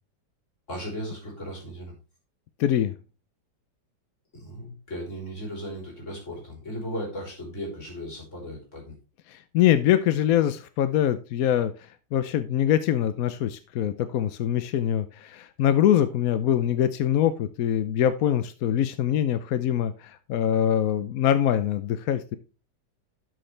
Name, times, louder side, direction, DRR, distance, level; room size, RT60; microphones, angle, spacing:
voice 1, 0.7-1.9 4.3-9.0, equal, 40° left, -2 dB, 4.1 m, -36 dB
voice 2, 2.6-2.9 9.3-22.4, left 10 dB, 65° left, 12 dB, 0.9 m, -24 dB
12.0 x 6.4 x 3.3 m, 0.32 s
omnidirectional pair, 2.0 m